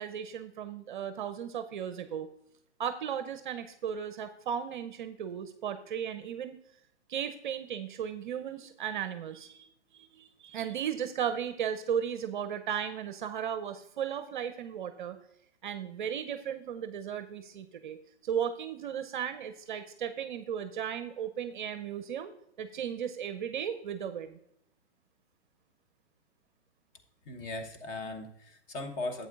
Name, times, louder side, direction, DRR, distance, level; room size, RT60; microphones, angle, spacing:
voice 1, 0.0-2.3 2.8-6.6 7.1-9.7 9.9-15.2 15.6-18.0 18.2-22.3 22.6-24.4, right 8 dB, 45° right, 10 dB, 0.6 m, -35 dB
voice 2, 27.3-29.3, left 2 dB, 25° left, 5 dB, 1.1 m, -38 dB
12.0 x 8.3 x 2.4 m, 0.75 s
hypercardioid pair, 130°, 34 cm